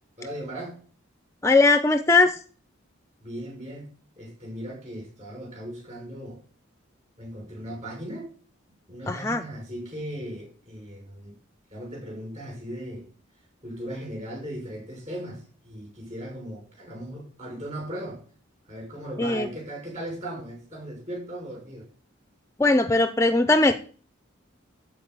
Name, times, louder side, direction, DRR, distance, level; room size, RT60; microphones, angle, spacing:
voice 1, 0.2-0.8 3.2-3.9 4.2-6.4 7.2-8.3 8.9-11.4 11.7-13.1 13.6-18.2 18.7-21.8, right 1 dB, 35° right, 6.2 m, -37 dB
voice 2, 1.4-2.4 9.1-9.4 19.2-19.5 22.6-23.8, left 3 dB, 15° left, 0.4 m, -20 dB
13.0 x 4.6 x 8.2 m
head